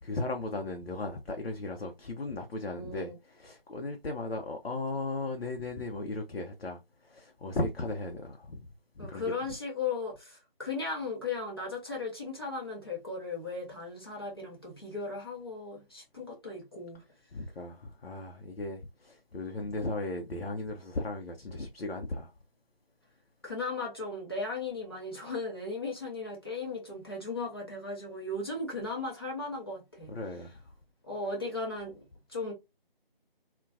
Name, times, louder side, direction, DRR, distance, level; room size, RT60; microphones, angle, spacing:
voice 1, 0.0-6.8 7.1-8.7 9.0-9.3 17.3-22.3 30.1-30.6, left 2 dB, 85° left, 0.5 m, -36 dB
voice 2, 2.6-3.2 9.0-17.0 23.4-30.2 31.1-32.0 32.3-32.5, left 3 dB, 25° left, 0.6 m, -36 dB
2.3 x 2.1 x 2.4 m
figure-of-eight pair, 165°, 29 cm